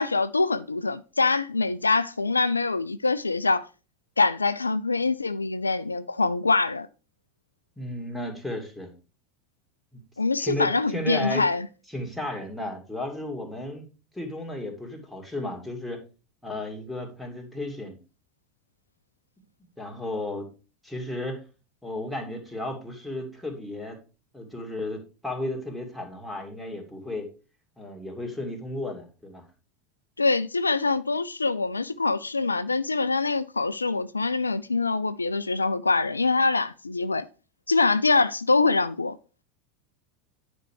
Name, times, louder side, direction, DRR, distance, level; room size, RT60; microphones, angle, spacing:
voice 1, 0.0-3.7 4.2-6.9 10.2-11.7 30.2-37.3 37.7-39.2, left 3 dB, 85° left, 0.4 m, -24 dB
voice 2, 7.8-8.9 9.9-10.0 10.4-11.5 11.9-13.9 14.1-16.0 16.4-18.0 19.8-20.5 20.8-21.4 21.8-24.0 24.3-27.3 27.8-29.4, left 1 dB, 5° left, 2.5 m, -34 dB
9.8 x 5.4 x 4.8 m
figure-of-eight pair, 80°, 0 cm